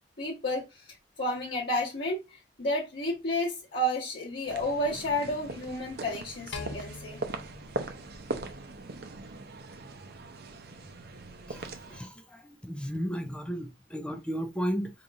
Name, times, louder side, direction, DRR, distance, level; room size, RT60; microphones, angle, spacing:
voice 1, 0.2-0.9 1.2-2.2 2.6-7.2, left 1 dB, 55° left, 1.3 m, -31 dB
sound 1, 4.5-12.0, right 3 dB, 60° right, 0.6 m, -40 dB
sound 2, 6.5-8.9, left 3 dB, 80° left, 0.8 m, -43 dB
voice 2, 11.9-14.9, equal, 5° left, 0.5 m, -34 dB
5.0 x 2.9 x 2.6 m
head